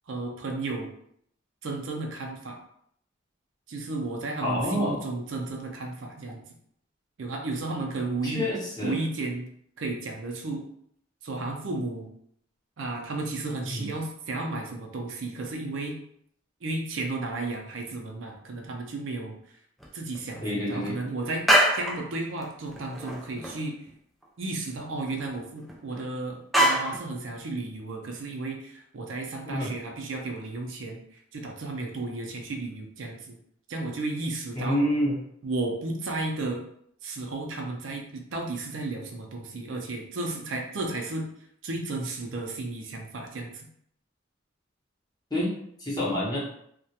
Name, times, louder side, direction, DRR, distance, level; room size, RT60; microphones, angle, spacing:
voice 1, 0.1-0.9 1.6-2.6 3.7-6.4 7.2-8.5 8.8-9.5 9.8-10.6 11.2-12.1 12.8-16.0 16.6-19.4 19.9-21.4 21.7-23.8 24.4-31.0 31.3-33.4 33.7-34.8 35.4-36.6 37.0-41.3 41.6-43.7, right 2 dB, 75° right, 2 dB, 0.5 m, -33 dB
voice 2, 4.4-5.0 8.2-9.0 13.7-13.9 20.4-20.9 29.5-29.7 34.5-35.2 45.3-45.5 45.8-46.4, left 1 dB, 20° left, -5 dB, 0.8 m, -27 dB
sound 1, 19.8-19.9 20.2-20.8 21.2-22.1 22.4-22.5 22.7-23.6 23.9-24.0 24.2-24.3 25.1-26.0 26.5-27.0, right 1 dB, ahead, 0.3 m, -24 dB
2.3 x 2.1 x 2.7 m, 0.68 s
head